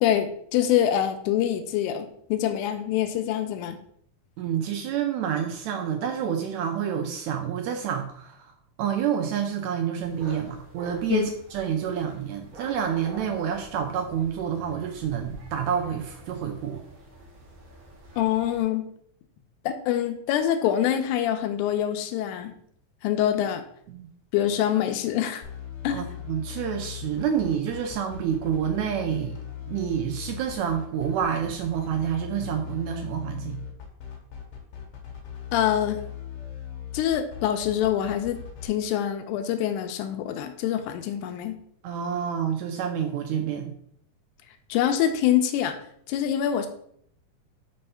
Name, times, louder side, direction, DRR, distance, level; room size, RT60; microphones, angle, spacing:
voice 1, 0.0-3.8 11.1-11.3 18.2-18.9 19.7-22.5 23.0-23.6 24.3-25.4 25.8-26.0 35.5-36.0 36.9-41.6 44.7-45.8 46.1-46.7, left 10 dB, 80° left, 7 dB, 2.0 m, -25 dB
voice 2, 4.4-8.5 8.8-16.8 23.9-24.1 25.9-29.4 29.7-33.6 41.8-43.7, right 8 dB, 80° right, 5 dB, 1.7 m, -28 dB
sound 1, 10.0-18.6, right 2 dB, 60° right, 0.9 m, -46 dB
sound 2, 25.4-38.7, left 9 dB, 65° left, 1.7 m, -39 dB
5.4 x 3.2 x 5.5 m, 0.67 s
omnidirectional pair, 3.6 m